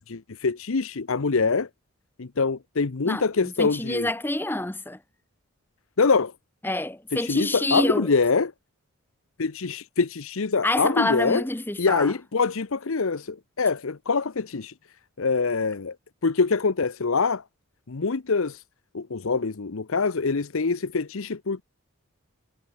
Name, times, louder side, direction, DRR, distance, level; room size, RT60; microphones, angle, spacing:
voice 1, 0.1-1.7 2.2-4.1 6.0-6.3 7.2-8.5 9.4-11.4 11.8-14.7 15.2-15.9 16.2-17.4 17.9-18.6 18.9-21.6, left 4 dB, 70° left, 0.8 m, -24 dB
voice 2, 3.0-5.0 6.6-8.1 10.6-12.1, left 1 dB, 10° left, 0.8 m, -27 dB
head